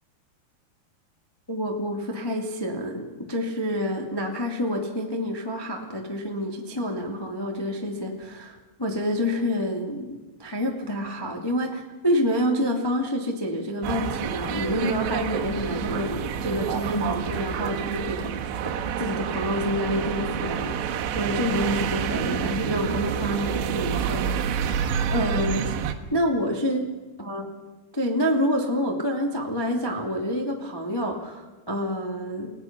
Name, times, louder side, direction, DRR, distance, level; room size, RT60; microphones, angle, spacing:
voice 1, 1.5-25.7 26.1-26.9 27.2-27.5 27.9-32.5, equal, 15° left, 0 dB, 0.7 m, -28 dB
sound 1, 13.8-25.9, right 8 dB, 80° right, 3.5 m, -28 dB
30.0 x 18.0 x 6.1 m, 1.2 s
omnidirectional pair, 5.2 m